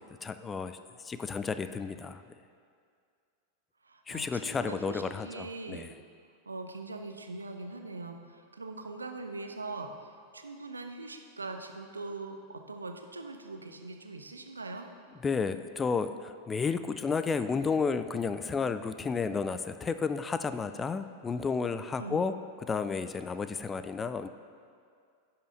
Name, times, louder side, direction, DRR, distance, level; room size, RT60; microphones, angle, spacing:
voice 1, 0.2-0.8 1.0-2.2 4.1-6.0 15.2-24.3, left 5 dB, 15° left, 11 dB, 0.4 m, -32 dB
voice 2, 3.8-5.9 6.5-14.9 22.0-22.2, right 3 dB, 80° right, 5 dB, 0.7 m, -42 dB
11.0 x 5.8 x 5.5 m, 2.3 s
figure-of-eight pair, 90°, 0 cm